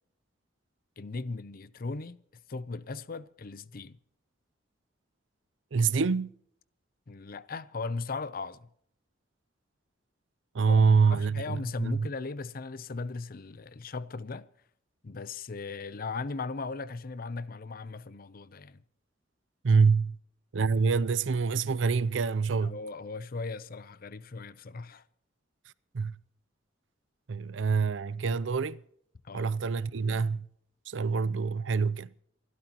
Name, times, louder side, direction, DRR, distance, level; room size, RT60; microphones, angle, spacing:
voice 1, 1.0-2.2 2.5-4.0 7.1-8.7 10.7-10.8 11.1-14.5 15.0-18.8 22.6-25.0 29.2-29.5, left 3 dB, 50° left, 0.6 m, -38 dB
voice 2, 5.7-6.3 10.5-12.1 19.6-20.2 20.5-22.8 25.9-26.1 27.3-28.8 29.3-30.5 30.9-32.1, right 5 dB, 75° right, 0.5 m, -26 dB
28.0 x 13.0 x 3.0 m
head